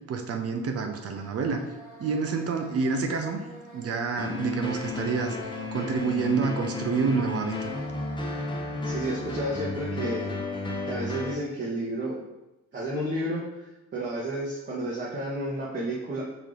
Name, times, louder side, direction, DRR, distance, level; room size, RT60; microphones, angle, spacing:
voice 1, 0.1-1.6 2.0-3.4 3.7-7.7, right 5 dB, 50° right, 6 dB, 0.6 m, -28 dB
sound 1, 1.1-8.6, right 1 dB, 75° right, 1.4 m, -48 dB
sound 2, 4.2-11.3, left 3 dB, 15° left, 0.8 m, -33 dB
voice 2, 8.8-10.3 10.8-12.2 12.7-16.2, right 1 dB, 35° right, -7 dB, 1.1 m, -31 dB
5.0 x 2.8 x 3.8 m, 0.97 s
cardioid pair, 90°, 30 cm